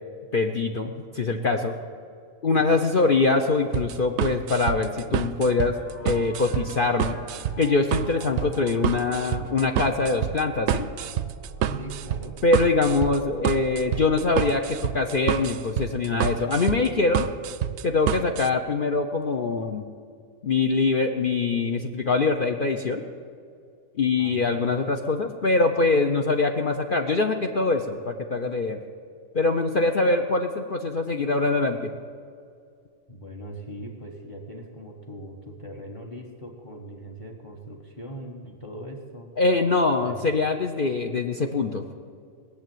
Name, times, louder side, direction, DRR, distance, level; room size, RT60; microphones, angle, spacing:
voice 1, 0.3-1.7 2.4-7.2 7.6-10.9 12.4-17.3 17.8-19.9 20.4-23.0 24.0-28.8 29.3-31.9 39.4-41.8, left 3 dB, 45° left, 4 dB, 0.8 m, -23 dB
sound 1, 3.7-18.5, right 10 dB, 65° right, 0.7 m, -28 dB
sound 2, 5.7-15.6, right 1 dB, 70° left, 2.1 m, -45 dB
voice 2, 8.2-8.6 11.6-12.4 24.2-24.6 33.1-39.3 40.0-40.3, right 1 dB, 25° left, 2 dB, 1.3 m, -40 dB
19.5 x 7.2 x 9.2 m, 2.3 s
omnidirectional pair, 1.4 m